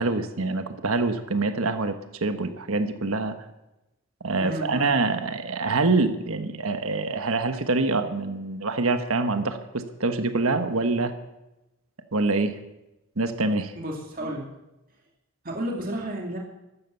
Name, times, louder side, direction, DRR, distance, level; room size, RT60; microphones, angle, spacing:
voice 1, 0.0-3.4 4.2-11.1 12.1-12.6 13.2-13.7, right 3 dB, 75° right, 8 dB, 1.3 m, -25 dB
voice 2, 4.4-4.9 13.8-14.5 15.4-16.4, right 1 dB, 40° right, -1 dB, 2.4 m, -32 dB
14.0 x 12.5 x 7.0 m, 0.96 s
head